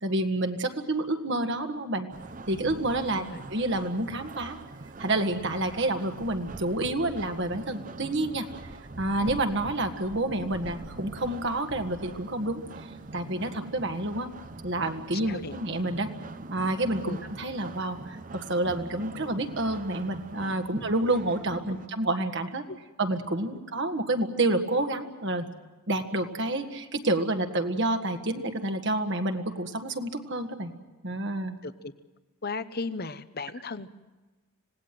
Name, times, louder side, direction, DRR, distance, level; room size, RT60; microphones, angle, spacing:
voice 1, 0.0-2.1 2.5-3.2 3.5-4.6 5.0-8.5 9.0-12.6 13.1-14.3 14.6-16.1 16.5-22.6 23.0-25.5 25.9-30.7 31.0-31.6, right 2 dB, 50° right, 6 dB, 1.7 m, -29 dB
sound 1, 2.1-21.9, right 2 dB, 35° right, 0.7 m, -43 dB
voice 2, 15.2-15.6 17.0-17.2 20.7-20.8 22.7-22.8 31.6-31.9 32.4-33.9, left 3 dB, 45° left, 13 dB, 0.9 m, -36 dB
26.5 x 18.5 x 7.7 m, 1.2 s
head